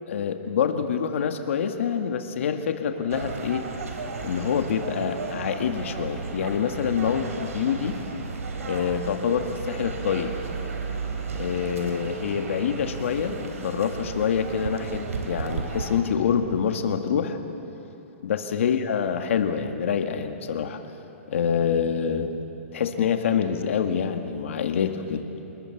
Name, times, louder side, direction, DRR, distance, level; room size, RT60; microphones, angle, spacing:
voice 1, 0.1-3.7 4.2-8.0 8.6-10.3 11.3-17.4 18.2-20.8 21.3-22.3 22.7-25.2, left 7 dB, 65° left, 6 dB, 1.9 m, -26 dB
sound 1, 3.1-16.0, right 4 dB, 90° right, 3.9 m, -34 dB
27.0 x 20.5 x 7.3 m, 2.9 s
hypercardioid pair, 165°, 8 cm